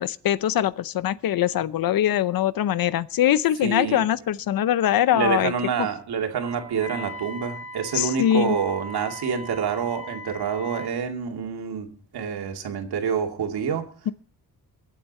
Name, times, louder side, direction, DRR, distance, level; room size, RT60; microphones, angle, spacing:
voice 1, 0.0-5.5 7.9-8.6 14.1-14.2, left 11 dB, 65° left, 0.7 m, -22 dB
voice 2, 3.6-4.0 5.1-13.9, right 7 dB, 85° right, 2.7 m, -27 dB
Wind instrument woodwind instrument, 6.4-10.9, equal, ahead, 6.7 m, -39 dB
24.0 x 8.5 x 4.2 m
wide cardioid pair, 135°, 37 cm